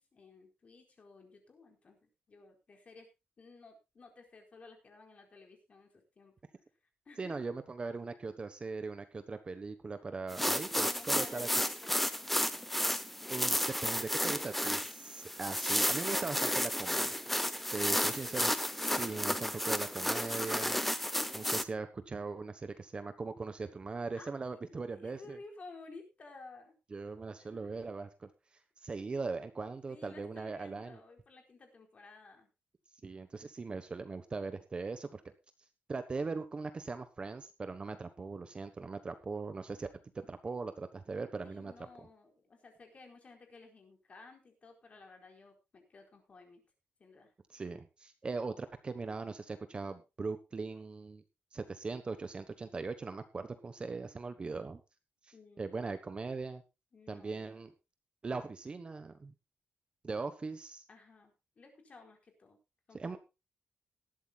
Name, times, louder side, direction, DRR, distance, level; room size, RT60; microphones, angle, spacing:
voice 1, 0.0-3.1 3.4-6.3 7.0-7.4 10.8-12.3 17.7-18.5 18.9-19.2 24.1-24.3 24.7-26.7 27.4-27.8 29.9-32.5 41.4-46.6 47.0-47.3 55.3-56.0 56.9-57.5 60.9-62.6 62.9-63.2, left 3 dB, 35° left, 3 dB, 4.4 m, -55 dB
voice 2, 7.2-11.5 13.3-17.1 17.7-18.5 18.8-20.8 21.3-25.4 26.9-28.3 28.8-31.0 33.0-35.2 35.9-39.9 40.1-41.7 47.5-51.2 51.5-54.8 55.2-56.6 57.1-57.7 58.2-59.3 60.0-60.8 62.9-63.2, right 4 dB, 25° right, 9 dB, 1.2 m, -40 dB
sound 1, 10.3-21.6, equal, 5° left, 0.8 m, -32 dB
18.5 x 13.0 x 2.4 m, 0.27 s
wide cardioid pair, 170°, 4 cm